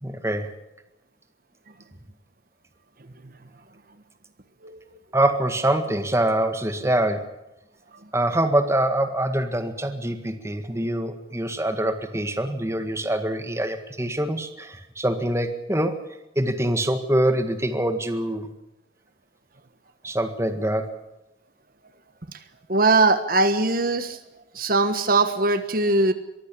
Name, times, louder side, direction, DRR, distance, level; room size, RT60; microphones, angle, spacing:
voice 1, 0.0-0.5 5.1-7.3 8.1-16.0 16.4-18.5 20.0-21.0, right 1 dB, 15° right, 8 dB, 1.8 m, -24 dB
voice 2, 22.7-24.2 24.5-26.1, right 3 dB, 50° right, 10 dB, 1.4 m, -20 dB
23.0 x 15.0 x 8.5 m, 0.93 s
head